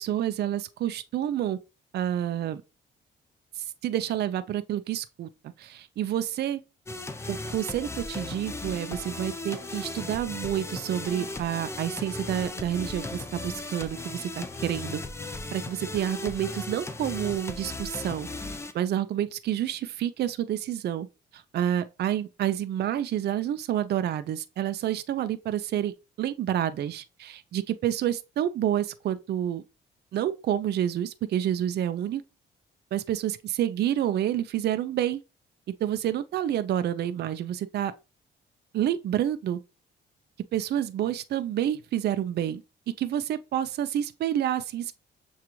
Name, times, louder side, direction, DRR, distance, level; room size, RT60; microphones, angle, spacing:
voice 1, 0.0-1.6 1.9-2.6 3.6-5.3 5.6-6.6 7.3-18.3 18.7-21.1 21.3-25.9 26.2-29.6 30.1-32.2 32.9-35.2 35.8-37.9 38.7-39.6 40.5-42.6 43.0-44.9, right 11 dB, 55° right, 0.4 m, -29 dB
sound 1, 6.9-18.7, left 2 dB, 15° left, 0.5 m, -36 dB
6.7 x 2.4 x 3.0 m
cardioid pair, 90°, 20 cm